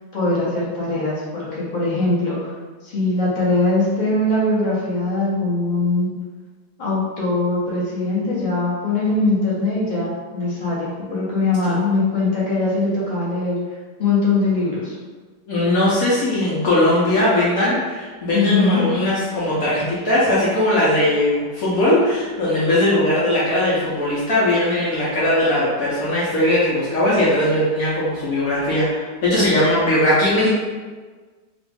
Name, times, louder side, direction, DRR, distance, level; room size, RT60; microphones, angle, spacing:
voice 1, 0.1-2.5 2.8-6.1 6.8-13.6 14.0-15.0 18.3-18.8, left 2 dB, 35° left, -7 dB, 0.8 m, -21 dB
voice 2, 15.5-30.5, left 1 dB, 60° left, -8 dB, 1.1 m, -19 dB
3.0 x 2.4 x 3.3 m, 1.4 s
omnidirectional pair, 1.8 m